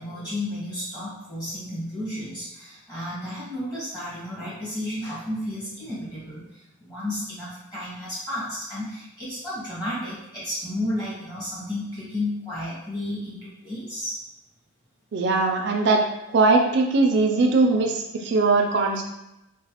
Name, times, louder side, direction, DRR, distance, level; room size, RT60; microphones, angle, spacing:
voice 1, 0.0-14.2, left 1 dB, 20° left, -9 dB, 1.1 m, -32 dB
voice 2, 15.1-16.1 16.3-19.0, right 3 dB, 60° right, 2 dB, 0.4 m, -20 dB
3.0 x 2.1 x 2.8 m, 0.87 s
head